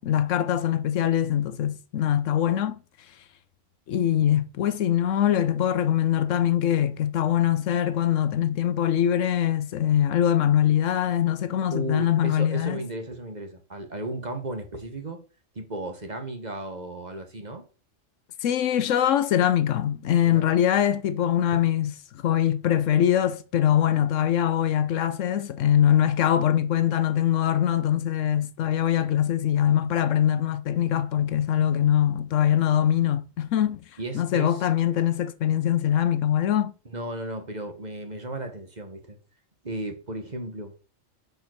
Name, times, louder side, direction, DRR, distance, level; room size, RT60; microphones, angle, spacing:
voice 1, 0.0-2.8 3.9-12.8 18.4-33.8 34.1-36.7, left 10 dB, 75° left, 1.0 m, -23 dB
voice 2, 11.7-15.2 15.5-17.7 20.2-20.5 21.5-21.6 34.0-34.6 36.8-39.2 39.6-40.7, right 2 dB, 35° right, 1.5 m, -35 dB
6.7 x 5.3 x 6.4 m
omnidirectional pair, 1.3 m